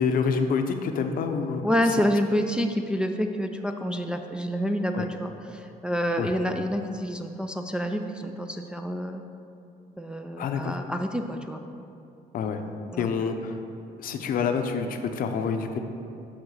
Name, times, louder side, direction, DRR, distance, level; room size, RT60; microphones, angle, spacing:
voice 1, 0.0-1.6 4.9-5.1 6.2-6.3 10.4-10.8 12.3-12.6 13.0-13.6 14.0-15.8, left 5 dB, 55° left, 6 dB, 0.6 m, -27 dB
voice 2, 1.6-9.2 10.0-11.6 12.9-13.1, equal, 5° right, 4 dB, 0.3 m, -28 dB
7.2 x 3.7 x 6.3 m, 2.7 s
cardioid pair, 110°, 17 cm